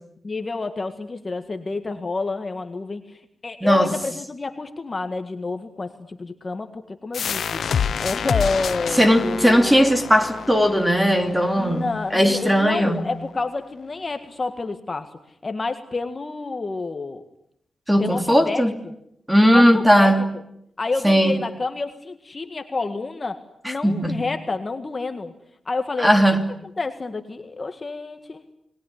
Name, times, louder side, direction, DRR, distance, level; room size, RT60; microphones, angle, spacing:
voice 1, 0.2-7.6 8.0-9.8 11.5-17.2 18.0-18.9 19.4-20.3 20.8-23.4 23.7-25.3 25.7-26.1 26.8-28.5, left 3 dB, 30° left, 7 dB, 1.8 m, -29 dB
voice 2, 3.6-3.9 9.0-13.0 17.9-18.7 19.3-20.2 21.0-21.4 23.8-24.2 26.0-26.4, equal, 5° right, 7 dB, 3.1 m, -17 dB
sound 1, 7.1-12.5, left 7 dB, 70° left, 1.1 m, -28 dB
29.0 x 20.5 x 10.0 m, 0.75 s
wide cardioid pair, 125°, 0 cm